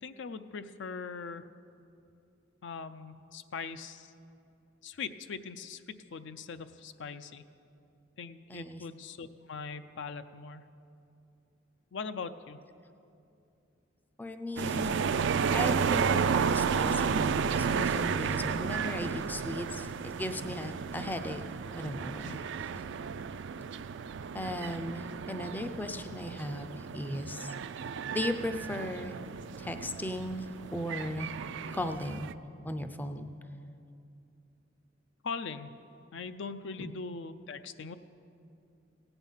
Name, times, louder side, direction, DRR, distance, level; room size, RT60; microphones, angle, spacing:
voice 1, 0.0-1.4 2.6-4.1 4.8-7.4 8.2-10.7 11.9-12.6 22.3-22.5 35.2-35.7 36.1-37.9, left 5 dB, 65° left, 10 dB, 0.5 m, -41 dB
voice 2, 8.5-8.8 14.2-15.2 15.5-21.4 21.7-22.4 24.3-27.5 28.1-29.1 29.6-31.3 31.7-32.3 32.6-33.3 36.8-36.9, left 1 dB, 10° left, 8 dB, 0.4 m, -37 dB
sound 1, 14.6-32.3, right 6 dB, 65° right, 0.4 m, -32 dB
16.0 x 9.0 x 5.6 m, 2.7 s
head